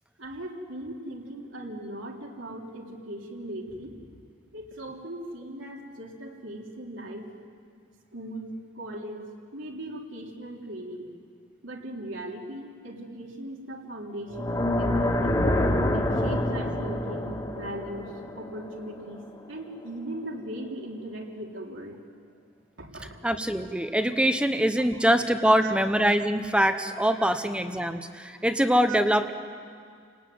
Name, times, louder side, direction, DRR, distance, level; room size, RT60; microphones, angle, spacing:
voice 1, 0.2-3.9 4.5-7.3 8.1-9.2 9.5-11.1 11.6-15.4 15.9-22.0 22.8-23.2 24.9-25.0 25.6-25.7 28.9-29.0, right 1 dB, 75° right, 0 dB, 3.5 m, -39 dB
sound 1, 14.3-19.4, left 1 dB, 20° left, 2.1 m, -27 dB
voice 2, 23.2-29.3, equal, 5° right, 8 dB, 0.9 m, -23 dB
30.0 x 19.0 x 9.5 m, 2.2 s
head